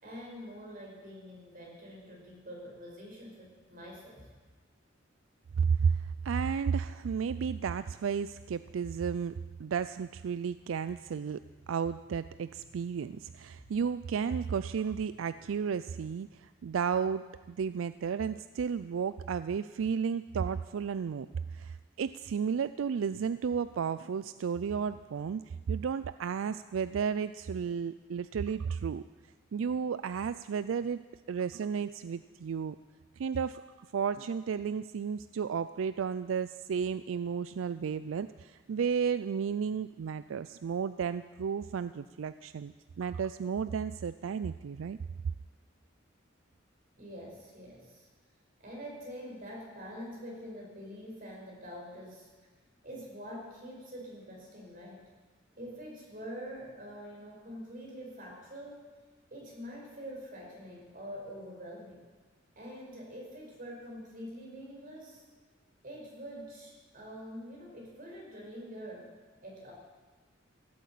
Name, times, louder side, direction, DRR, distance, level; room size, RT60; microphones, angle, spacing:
voice 1, 0.0-4.3 47.0-48.1 48.6-52.3 52.8-55.0 55.6-58.8 59.3-62.1 62.6-65.2 65.8-69.1 69.4-69.7, equal, 45° right, -2 dB, 5.2 m, -45 dB
voice 2, 5.6-11.4 11.7-21.3 21.5-29.0 29.5-31.0 31.3-32.8 33.2-45.0, right 6 dB, 90° right, 13 dB, 0.4 m, -33 dB
16.0 x 8.6 x 8.4 m, 1.3 s
head